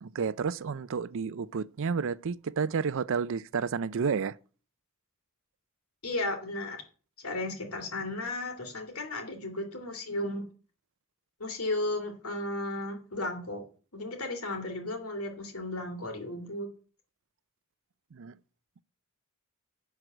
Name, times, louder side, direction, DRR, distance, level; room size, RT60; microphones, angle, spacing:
voice 1, 0.0-4.4 18.1-18.4, right 5 dB, 60° right, 0.5 m, -31 dB
voice 2, 6.0-6.8 7.2-10.4 11.4-13.6 13.9-16.7, left 2 dB, 75° left, 2.8 m, -34 dB
11.0 x 4.7 x 7.7 m
head